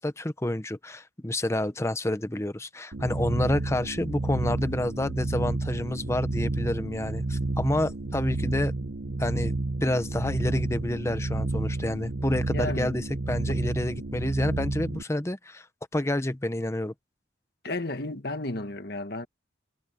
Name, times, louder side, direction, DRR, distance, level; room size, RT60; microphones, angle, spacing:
voice 1, 0.0-8.7 9.2-9.5 9.8-15.7 15.9-16.9, left 1 dB, 15° left, 0.7 m, -29 dB
sound 1, 2.9-15.0, right 2 dB, 65° right, 1.0 m, -30 dB
voice 2, 12.5-13.0 17.6-19.3, left 2 dB, 55° left, 1.6 m, -33 dB
head